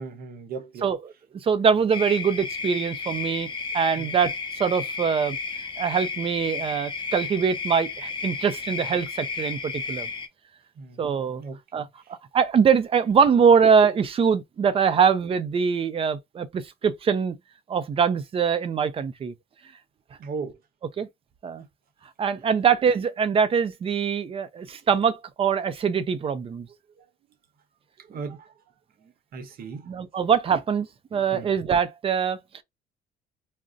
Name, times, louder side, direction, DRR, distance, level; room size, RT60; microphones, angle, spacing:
voice 1, 0.0-0.9 4.0-4.2 10.8-11.9 20.2-20.6 27.0-27.1 28.0-28.5 29.3-29.9 31.3-31.5, right 4 dB, 60° right, 0.9 m, -37 dB
voice 2, 0.8-3.5 3.7-4.3 4.6-5.4 5.8-10.1 11.0-11.4 11.7-11.9 12.3-17.4 17.7-19.3 21.0-21.1 21.4-21.6 22.2-26.7 29.9-32.4, right 6 dB, 35° right, 0.5 m, -23 dB
sound 1, 1.9-10.3, left 4 dB, 30° left, 0.5 m, -33 dB
2.5 x 2.1 x 3.7 m
cardioid pair, 110°, 17 cm